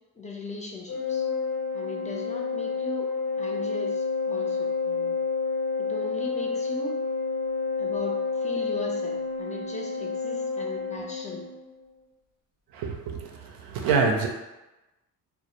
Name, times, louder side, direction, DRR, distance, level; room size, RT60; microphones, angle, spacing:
voice 1, 0.2-1.3 1.7-3.1 3.4-5.2 5.8-7.0 7.8-11.5, left 2 dB, 20° left, -2 dB, 0.5 m, -39 dB
Organ, 0.9-11.6, left 4 dB, 60° left, 0.7 m, -29 dB
voice 2, 12.7-14.3, right 5 dB, 70° right, 2 dB, 0.5 m, -26 dB
2.1 x 2.1 x 2.8 m, 1.0 s
supercardioid pair, 60°, 37 cm